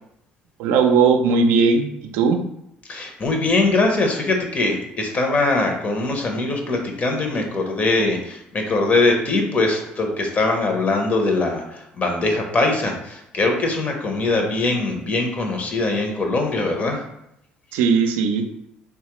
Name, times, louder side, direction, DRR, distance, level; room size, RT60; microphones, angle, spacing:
voice 1, 0.6-1.9 2.1-2.4 17.7-18.5, right 5 dB, 85° right, 5 dB, 0.3 m, -17 dB
voice 2, 2.9-17.0, left 2 dB, 40° left, 3 dB, 0.7 m, -22 dB
3.0 x 2.3 x 3.0 m, 0.79 s
supercardioid pair, 75°, 4 cm